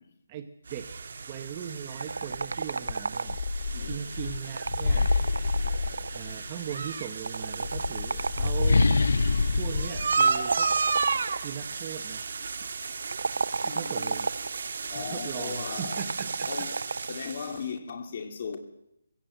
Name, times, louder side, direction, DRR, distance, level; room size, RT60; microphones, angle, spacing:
voice 1, 0.3-0.9 1.3-3.4 3.9-5.1 6.1-8.9 9.5-10.7 11.4-12.2 13.6-14.3 14.9-16.5, right 9 dB, 15° right, 0.9 m, -39 dB
sound 1, 0.7-17.7, right 4 dB, 45° right, 1.4 m, -33 dB
sound 2, 2.0-3.6 4.4-6.3 7.3-9.1 10.1-11.4 13.0-14.6 15.8-17.2, right 3 dB, 70° right, 0.8 m, -32 dB
sound 3, 2.3-2.5 2.9-6.5 7.4-11.1, left 3 dB, 60° left, 0.8 m, -27 dB
voice 2, 3.7-4.0 13.6-14.2 14.9-16.1 16.5-16.8 17.0-18.6, left 6 dB, 30° left, 2.4 m, -37 dB
21.5 x 16.5 x 7.7 m
hypercardioid pair, 175°, 0 cm